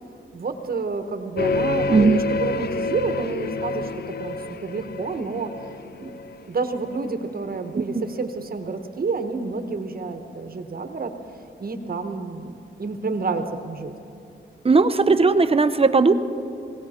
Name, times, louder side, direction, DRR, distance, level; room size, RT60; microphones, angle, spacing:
voice 1, 0.3-3.9 4.2-4.4 4.6-5.5 6.0-6.2 6.5-11.1 11.6-13.9, right 4 dB, 45° right, 7 dB, 1.1 m, -29 dB
sound 1, 1.4-7.0, left 3 dB, 50° left, 0.5 m, -28 dB
voice 2, 1.9-2.2 7.9-8.0 14.6-16.1, right 4 dB, 30° right, 11 dB, 0.6 m, -17 dB
18.5 x 18.0 x 4.3 m, 2.7 s
wide cardioid pair, 105°, 21 cm